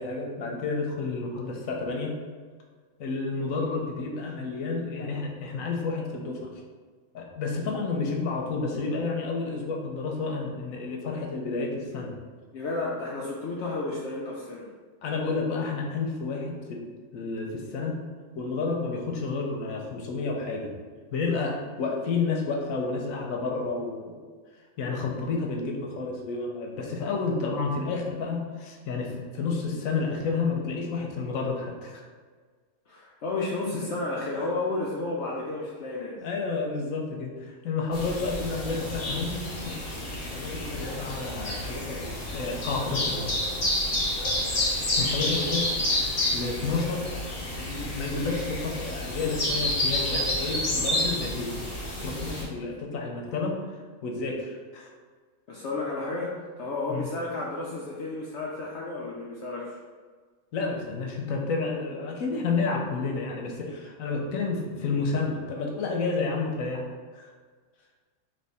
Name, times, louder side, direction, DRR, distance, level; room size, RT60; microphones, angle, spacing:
voice 1, 0.0-2.2 3.0-6.6 7.1-12.1 15.0-18.0 18.3-20.7 21.1-24.2 24.8-32.0 36.2-43.4 45.0-45.7 46.3-47.1 47.6-51.5 52.0-53.6 54.0-54.9 56.9-57.1 60.5-66.8 67.1-67.3, left 4 dB, 85° left, 1 dB, 1.1 m, -30 dB
voice 2, 12.5-14.7 32.9-36.2 55.5-59.8, left 2 dB, 65° left, -4 dB, 0.8 m, -32 dB
sound 1, 37.9-52.4, left 1 dB, 40° left, 1.2 m, -29 dB
3.3 x 3.0 x 4.1 m, 1.5 s
omnidirectional pair, 1.4 m